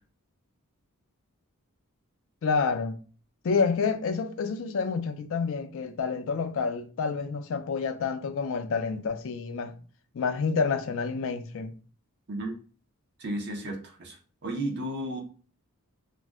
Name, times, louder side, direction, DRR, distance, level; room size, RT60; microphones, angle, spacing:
voice 1, 2.4-3.0 3.4-9.7 10.1-11.7, left 5 dB, 65° left, 0.4 m, -28 dB
voice 2, 13.2-14.2 14.4-15.2, right 1 dB, 50° right, 0.7 m, -33 dB
2.5 x 2.1 x 3.4 m
head